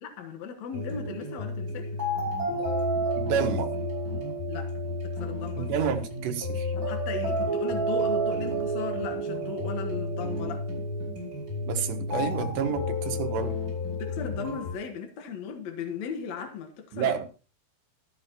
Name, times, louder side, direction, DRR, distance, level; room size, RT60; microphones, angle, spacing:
voice 1, 0.0-2.0 4.5-5.9 6.8-10.7 13.9-17.2, left 6 dB, 60° left, 2.1 m, -37 dB
sound 1, 0.7-14.7, equal, 20° right, 6.2 m, -30 dB
voice 2, 3.2-3.7 5.6-6.7 11.7-13.6 16.9-17.2, right 7 dB, 85° right, 3.6 m, -29 dB
13.5 x 13.0 x 2.9 m
omnidirectional pair, 4.8 m